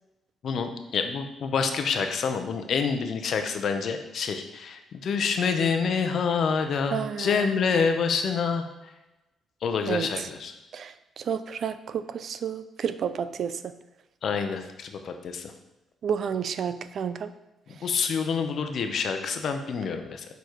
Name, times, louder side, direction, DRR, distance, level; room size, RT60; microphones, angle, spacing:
voice 1, 0.4-8.9 9.6-10.5 14.2-15.5 17.7-20.3, left 5 dB, 60° left, 7 dB, 0.8 m, -27 dB
voice 2, 6.9-7.5 9.9-10.3 10.7-13.7 16.0-17.3 17.8-17.9, right 7 dB, 60° right, 12 dB, 0.4 m, -31 dB
6.7 x 4.0 x 4.6 m, 1.0 s
cardioid pair, 90°, 0 cm